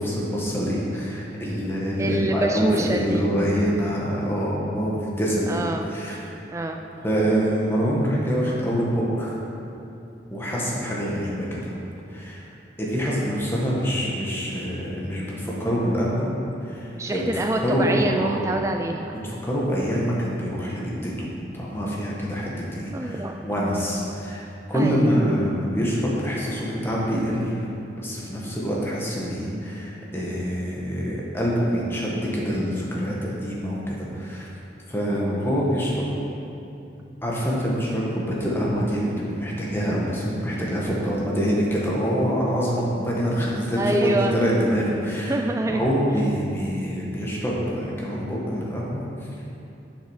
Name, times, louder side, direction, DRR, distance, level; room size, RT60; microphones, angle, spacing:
voice 1, 0.0-5.5 5.9-6.2 7.0-9.3 10.3-11.7 12.1-12.4 12.8-16.3 16.7-17.3 17.6-18.5 19.2-24.4 24.7-27.5 28.0-34.5 34.9-36.1 37.2-45.3 45.7-49.0, equal, 15° left, -5 dB, 1.5 m, -25 dB
voice 2, 2.0-3.2 5.5-5.9 6.5-6.8 16.9-19.2 22.9-23.3 24.7-25.3 43.8-44.4 45.3-45.9, right 1 dB, 15° right, 3 dB, 0.3 m, -26 dB
7.6 x 6.7 x 6.5 m, 2.8 s
head